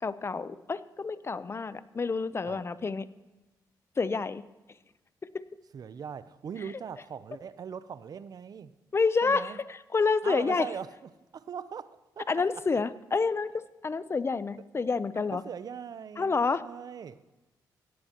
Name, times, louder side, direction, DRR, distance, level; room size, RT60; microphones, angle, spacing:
voice 1, 0.0-3.1 4.0-4.4 5.3-5.4 8.9-10.7 12.3-15.4 16.2-16.7, left 4 dB, 35° left, 0.6 m, -28 dB
voice 2, 5.7-8.7 9.2-9.6 10.2-12.3 15.2-16.4 16.6-17.2, right 7 dB, 55° right, 0.6 m, -40 dB
17.5 x 14.0 x 3.0 m
cardioid pair, 75°, 8 cm